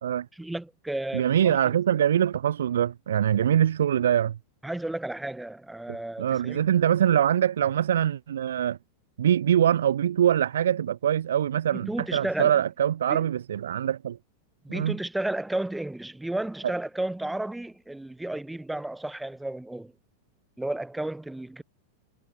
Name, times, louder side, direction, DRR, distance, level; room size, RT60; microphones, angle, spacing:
voice 1, 0.3-1.7 4.6-6.6 11.7-12.6 13.1-13.3 14.6-19.9 20.6-21.6, right 1 dB, 5° right, 5.4 m, -33 dB
voice 2, 1.1-4.4 5.9-8.8 9.2-14.2 14.7-15.0, right 10 dB, 65° right, 0.8 m, -23 dB
figure-of-eight pair, 90°, 0 cm